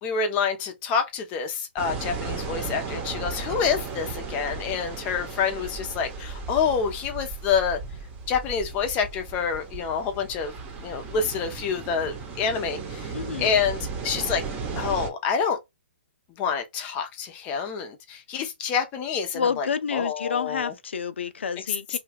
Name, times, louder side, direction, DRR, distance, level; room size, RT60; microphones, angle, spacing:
voice 1, 0.0-7.8 8.3-10.5 10.8-13.8 14.0-14.4 14.8-15.6 16.4-20.7 21.9-22.0, left 6 dB, 25° left, 0.7 m, -27 dB
sound 1, 1.8-15.1, right 4 dB, 20° right, 0.9 m, -35 dB
voice 2, 13.1-13.5 19.3-22.0, left 6 dB, 75° left, 0.5 m, -29 dB
2.7 x 2.3 x 3.4 m
hypercardioid pair, 145°, 6 cm